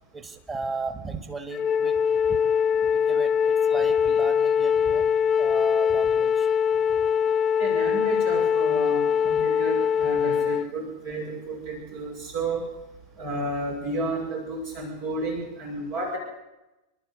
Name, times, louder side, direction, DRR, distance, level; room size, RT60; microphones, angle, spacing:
voice 1, 0.1-2.0 2.3-2.4 2.9-5.0 5.4-6.5, right 4 dB, 20° right, 6 dB, 3.2 m, -35 dB
Wind instrument woodwind instrument, 1.5-10.7, left 7 dB, 25° left, 0.7 m, -22 dB
voice 2, 7.6-12.6 13.2-16.2, right 2 dB, 55° right, 0 dB, 6.6 m, -32 dB
29.0 x 13.0 x 8.3 m, 0.99 s
figure-of-eight pair, 90°, 0 cm